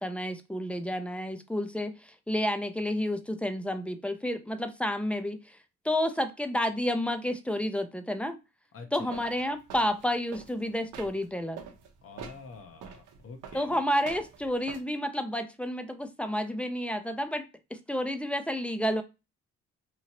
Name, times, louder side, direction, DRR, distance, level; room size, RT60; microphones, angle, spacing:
voice 1, 0.0-5.6 5.8-8.4 8.9-11.6 13.5-17.4 17.7-19.0, left 1 dB, 5° left, 8 dB, 0.4 m, -30 dB
voice 2, 8.7-9.1 12.0-13.8, left 4 dB, 50° left, 5 dB, 0.7 m, -47 dB
sound 1, 9.1-11.3 11.6-14.8, right 7 dB, 85° right, 0.7 m, -45 dB
2.9 x 2.7 x 2.8 m, 0.27 s
cardioid pair, 90°, 30 cm